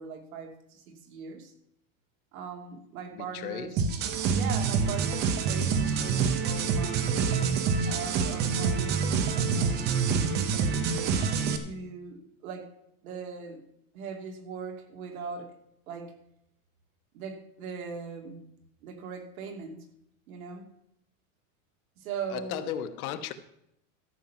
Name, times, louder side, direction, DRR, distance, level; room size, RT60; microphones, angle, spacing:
voice 1, 0.0-1.5 2.3-3.9 4.3-7.3 7.8-12.7 13.0-13.6 13.9-15.5 15.9-16.1 17.1-18.4 18.8-19.9 20.3-20.7 22.0-22.7, right 5 dB, 80° right, 2.6 m, -40 dB
voice 2, 3.1-3.7 22.3-23.3, left 10 dB, 85° left, 1.3 m, -35 dB
sound 1, 3.8-11.6, right 5 dB, 25° right, 0.7 m, -26 dB
13.5 x 7.3 x 5.7 m
supercardioid pair, 180°, 42 cm